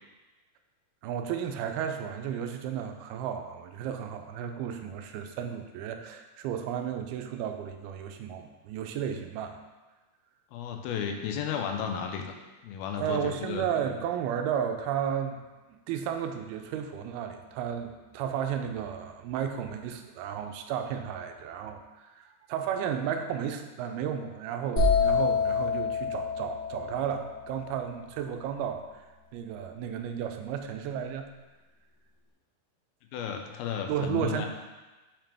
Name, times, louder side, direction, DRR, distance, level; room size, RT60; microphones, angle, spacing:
voice 1, 1.0-9.6 13.0-15.4 15.7-28.8 29.3-31.3 33.9-34.5, right 8 dB, 90° right, 6 dB, 2.5 m, -33 dB
voice 2, 10.5-12.3 12.6-13.6 33.1-34.5, left 7 dB, 85° left, 4 dB, 2.5 m, -33 dB
sound 1, 24.8-28.5, left 5 dB, 25° left, 2.0 m, -28 dB
7.0 x 5.7 x 3.4 m, 1.2 s
omnidirectional pair, 4.4 m